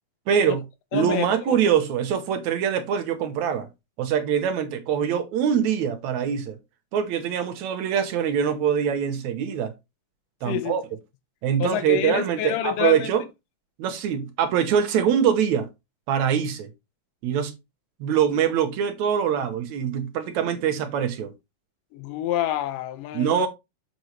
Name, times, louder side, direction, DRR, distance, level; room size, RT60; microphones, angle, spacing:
voice 1, 0.3-0.6 0.9-3.7 4.0-6.6 6.9-9.7 10.4-10.8 11.4-13.2 13.8-15.7 16.1-16.7 17.2-17.5 18.0-21.3 23.1-23.5, right 8 dB, 70° right, 2.0 m, -23 dB
voice 2, 0.9-1.6 10.5-10.8 11.6-13.1 21.9-23.5, left 12 dB, 80° left, 2.3 m, -28 dB
7.2 x 5.3 x 3.1 m
omnidirectional pair, 3.8 m